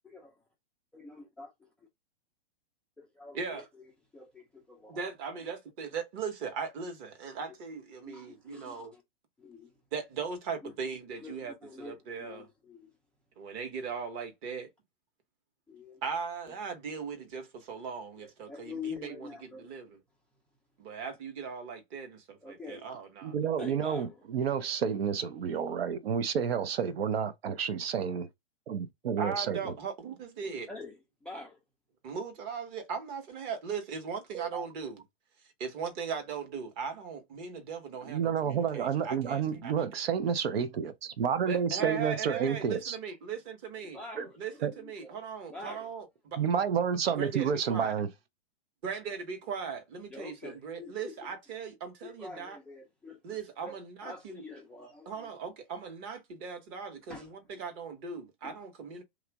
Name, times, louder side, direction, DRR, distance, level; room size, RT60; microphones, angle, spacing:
voice 1, 0.9-1.5 3.2-3.6 4.1-5.1 8.0-9.0 9.4-9.7 10.6-10.7 11.2-12.9 15.7-16.0 16.5-16.6 18.2-19.7 22.4-22.8 23.6-24.2 30.7-31.6 41.2-41.3 41.8-42.0 43.9-45.2 45.5-45.9 50.1-51.3 52.0-53.2 53.6-55.3 57.1-57.3 58.4-58.5, left 4 dB, 5° left, 0.3 m, -46 dB
voice 2, 3.3-3.7 4.9-8.9 9.9-12.5 13.4-14.7 16.0-19.9 20.8-23.3 29.2-30.7 32.0-35.0 35.6-39.7 41.5-44.0 44.4-46.4 47.2-47.9 48.8-52.6 53.2-54.4 55.1-59.0, right 6 dB, 35° right, 1.0 m, -38 dB
voice 3, 23.2-28.3 28.7-29.7 34.3-34.6 38.1-43.0 44.2-44.3 44.6-44.7 46.4-48.1, right 7 dB, 75° right, 0.6 m, -30 dB
3.0 x 2.4 x 3.3 m
hypercardioid pair, 120°, 30 cm